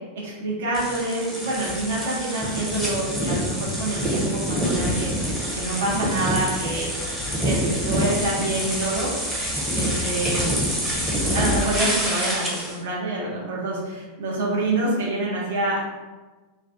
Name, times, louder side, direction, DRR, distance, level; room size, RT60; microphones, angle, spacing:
voice 1, 0.2-6.9 7.4-9.1 9.7-10.6 11.2-15.8, right 2 dB, 60° right, -4 dB, 0.7 m, -27 dB
sound 1, 0.7-12.8, equal, ahead, 0.6 m, -26 dB
2.3 x 2.2 x 2.5 m, 1.3 s
figure-of-eight pair, 90°, 0 cm